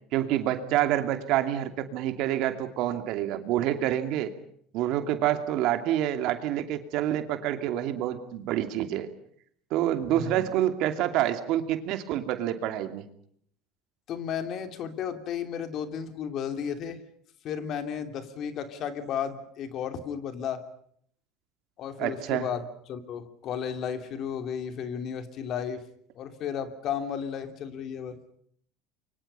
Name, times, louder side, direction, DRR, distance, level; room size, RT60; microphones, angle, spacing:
voice 1, 0.1-4.3 4.7-9.1 9.7-13.0 22.0-22.5, right 12 dB, 65° right, 8 dB, 2.6 m, -27 dB
voice 2, 10.1-10.5 14.1-17.0 17.4-20.6 21.8-25.8 26.2-28.2, left 8 dB, 50° left, 8 dB, 3.0 m, -33 dB
29.5 x 24.0 x 5.5 m, 0.63 s
supercardioid pair, 105°, 0 cm